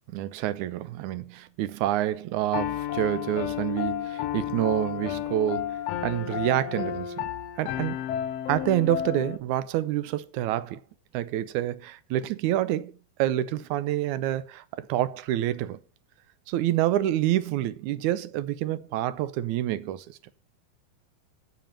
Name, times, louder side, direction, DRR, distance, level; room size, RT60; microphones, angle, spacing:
voice 1, 0.1-7.2 7.6-8.0 8.5-10.8 11.1-12.9 13.2-15.8 16.5-20.2, right 13 dB, 75° right, 1.8 m, -27 dB
Piano, 2.5-9.4, left 11 dB, 80° left, 1.4 m, -32 dB
8.1 x 7.2 x 7.2 m
omnidirectional pair, 3.9 m